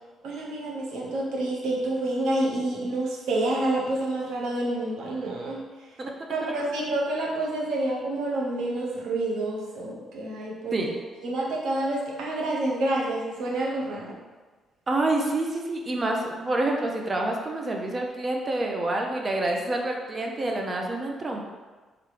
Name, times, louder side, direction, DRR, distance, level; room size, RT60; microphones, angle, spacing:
voice 1, 0.2-5.6 6.3-10.8 11.2-14.2, right 2 dB, 85° right, -3 dB, 0.9 m, -28 dB
voice 2, 14.9-21.4, right 2 dB, 35° right, 1 dB, 0.6 m, -27 dB
3.5 x 3.4 x 3.3 m, 1.3 s
cardioid pair, 90°, 0 cm